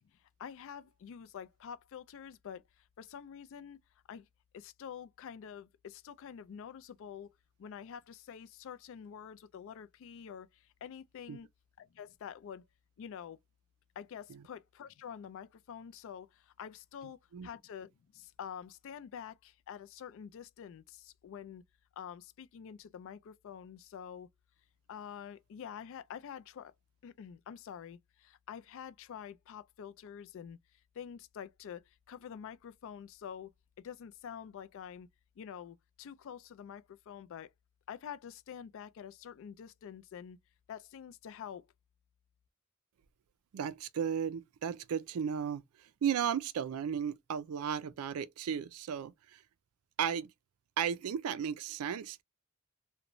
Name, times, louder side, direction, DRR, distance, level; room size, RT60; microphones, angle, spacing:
voice 1, 0.4-3.8 4.1-4.3 4.5-7.3 7.6-11.5 11.8-12.6 13.0-13.4 14.0-21.6 22.0-24.3 24.9-26.7 27.0-30.6 30.9-33.5 33.8-35.1 35.4-37.5 37.9-40.4 40.7-41.7, left 8 dB, 60° left, 0.3 m, -47 dB
voice 2, 43.5-49.4 50.0-50.3 50.8-52.2, right 8 dB, 75° right, 0.4 m, -35 dB
3.0 x 2.1 x 2.4 m
head